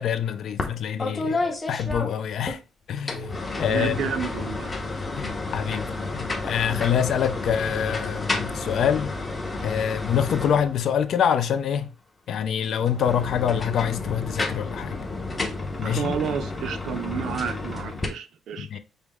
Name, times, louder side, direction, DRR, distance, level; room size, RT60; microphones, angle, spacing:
voice 1, 0.0-2.6 2.9-4.0 5.2-9.2 9.6-11.9 12.3-15.0 15.8-16.1 18.6-18.8, left 8 dB, 60° left, 0.4 m, -26 dB
sound 1, 0.6-0.7 1.0-2.6 3.0-11.0 12.8-18.1, left 2 dB, 20° left, 0.8 m, -31 dB
voice 2, 3.7-4.7 15.8-18.7, right 7 dB, 70° right, 0.5 m, -30 dB
5.1 x 2.1 x 3.5 m
cardioid pair, 125°, 0 cm